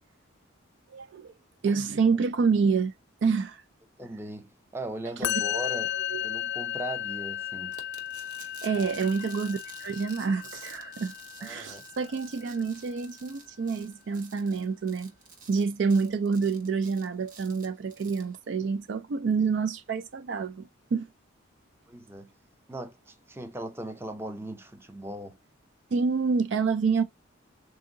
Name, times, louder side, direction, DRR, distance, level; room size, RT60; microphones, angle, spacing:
voice 1, 0.9-1.3 1.6-2.9 3.2-3.6 6.1-6.2 8.6-11.1 11.4-15.1 15.5-21.1 25.9-27.0, right 5 dB, 60° right, 0.4 m, -27 dB
voice 2, 4.0-6.0 6.2-7.7 8.7-9.0 11.4-11.8 21.9-22.3 22.7-25.4, right 1 dB, 10° right, 0.6 m, -39 dB
Musical instrument, 5.2-12.5, left 11 dB, 55° left, 0.6 m, -35 dB
sound 1, 7.7-18.4, right 5 dB, 40° right, 0.9 m, -51 dB
3.7 x 2.7 x 3.7 m
head